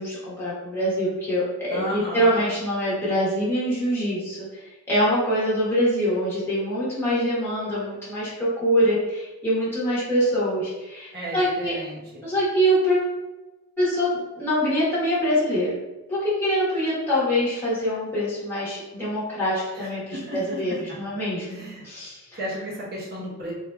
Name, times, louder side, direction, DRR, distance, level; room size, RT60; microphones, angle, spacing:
voice 1, 0.0-11.7 12.2-13.1 13.8-15.7 16.1-22.2, equal, 10° left, -9 dB, 1.1 m, -24 dB
voice 2, 1.7-2.4 11.1-12.2 19.7-20.6 21.5-21.8 22.4-23.5, equal, 45° right, -6 dB, 1.0 m, -34 dB
3.3 x 2.8 x 2.3 m, 1.1 s
head